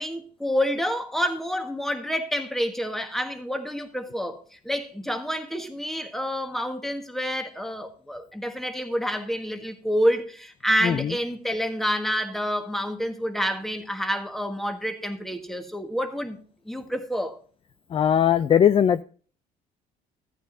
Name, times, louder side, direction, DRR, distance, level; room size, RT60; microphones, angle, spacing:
voice 1, 0.0-16.4 16.7-17.4, equal, ahead, 1.5 m, -28 dB
voice 2, 17.9-19.0, left 9 dB, 35° left, 0.4 m, -19 dB
13.5 x 9.0 x 2.6 m
cardioid pair, 110°, 17 cm